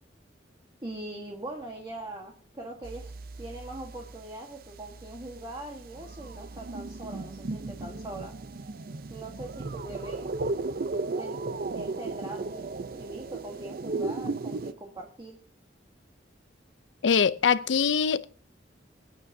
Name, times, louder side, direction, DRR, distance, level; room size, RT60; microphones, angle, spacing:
voice 1, 0.8-8.3 9.1-10.3 11.2-11.4 11.7-15.4, right 1 dB, 25° right, 1.4 m, -41 dB
sound 1, 2.8-4.3 4.7-14.7, right 3 dB, 55° right, 0.6 m, -36 dB
voice 2, 17.0-18.2, left 6 dB, 75° left, 0.5 m, -23 dB
25.5 x 9.4 x 2.7 m
head